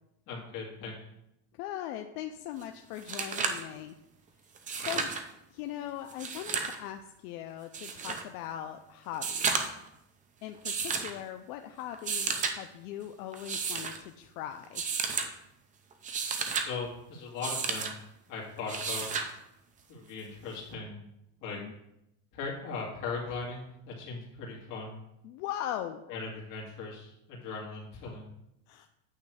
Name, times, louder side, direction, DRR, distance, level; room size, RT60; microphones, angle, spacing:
voice 1, 0.3-0.9 16.6-18.0 18.3-19.1 19.9-21.1 21.4-21.6 22.3-25.0 26.1-28.3, left 4 dB, 45° left, -3 dB, 2.2 m, -39 dB
voice 2, 1.6-4.0 4.8-5.1 5.5-9.7 10.4-14.8 21.5-21.7 25.2-26.0 28.7-28.9, left 11 dB, 75° left, 6 dB, 0.6 m, -40 dB
sound 1, 2.6-2.7 3.0-3.7 4.6-5.2 6.1-6.8 7.7-8.2 9.1-9.9 10.6-11.1 11.9-12.5 13.3-14.0 14.7-15.3 15.9-16.7 17.4-17.9 18.7-19.3 20.7-20.8, right 5 dB, 20° right, 0.5 m, -32 dB
9.0 x 3.2 x 6.2 m, 0.84 s
cardioid pair, 160°, 44 cm